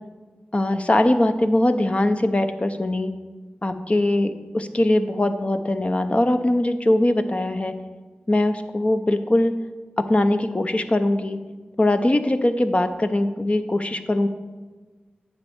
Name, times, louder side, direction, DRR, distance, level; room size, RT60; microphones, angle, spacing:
voice 1, 0.5-3.1 3.6-7.7 8.3-9.5 10.0-11.4 11.8-14.3, left 1 dB, 35° left, 8 dB, 0.8 m, -21 dB
9.5 x 4.4 x 7.3 m, 1.3 s
cardioid pair, 45°, 4 cm